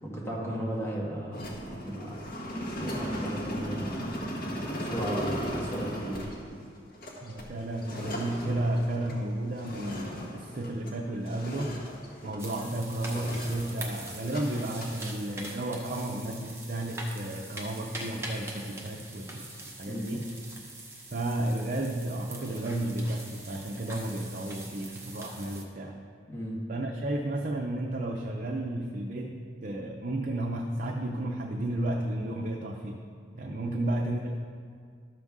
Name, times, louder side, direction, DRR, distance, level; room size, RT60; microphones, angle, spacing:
voice 1, 0.0-1.5 1.8-2.2 2.8-4.0 4.7-6.3 19.8-20.1 26.3-26.6 33.7-33.8, right 1 dB, 15° left, -6 dB, 1.8 m, -35 dB
sound 1, 1.3-11.0 11.3-12.7 13.0-14.4 14.7-14.9, equal, 50° left, 1.6 m, -36 dB
voice 2, 7.2-11.8 12.2-19.5 19.8-20.3 21.1-26.0 26.7-33.0 33.3-34.4, right 1 dB, 45° right, 1 dB, 0.6 m, -32 dB
sound 2, 12.4-25.6, right 2 dB, 15° right, 1.0 m, -43 dB
12.5 x 6.7 x 3.6 m, 2.1 s
head